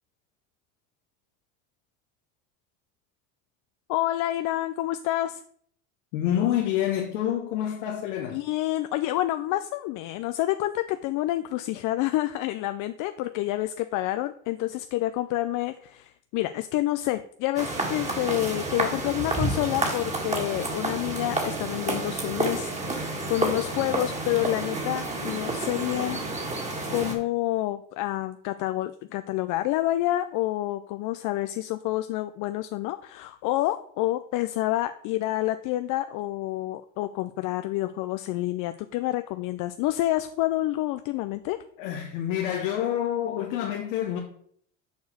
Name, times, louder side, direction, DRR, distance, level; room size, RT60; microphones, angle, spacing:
voice 1, 3.9-5.4 7.7-7.8 8.3-26.2 26.9-41.6, left 15 dB, 55° left, 0.5 m, -28 dB
voice 2, 6.1-8.4 41.8-44.2, left 11 dB, 85° left, 1.3 m, -27 dB
sound 1, 17.6-27.1, right 2 dB, 20° right, 2.0 m, -30 dB
6.8 x 4.7 x 6.6 m
supercardioid pair, 115°, 37 cm